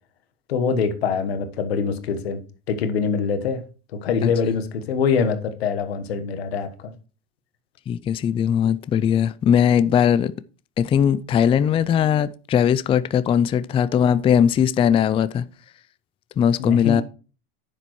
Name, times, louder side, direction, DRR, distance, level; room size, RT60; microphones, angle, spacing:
voice 1, 0.5-2.4 2.7-3.6 3.9-6.9 16.6-17.0, left 6 dB, 90° left, 1.3 m, -24 dB
voice 2, 7.9-10.3 10.8-15.4 16.4-17.0, left 8 dB, 20° left, 0.4 m, -19 dB
10.0 x 7.1 x 3.1 m
supercardioid pair, 110°, 30 cm